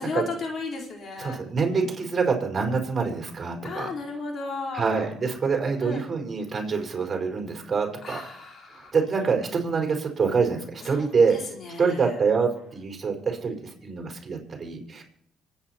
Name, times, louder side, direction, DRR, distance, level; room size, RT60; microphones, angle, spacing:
voice 1, 0.0-1.4 3.6-5.0 5.8-6.0 8.0-8.9 10.9-11.4 11.7-12.0, left 4 dB, 50° left, 1 dB, 4.3 m, -34 dB
voice 2, 1.2-3.9 4.7-8.2 8.8-11.4 11.8-15.0, right 5 dB, 35° right, 2 dB, 5.1 m, -26 dB
25.0 x 9.1 x 4.5 m, 0.70 s
supercardioid pair, 75°, 0 cm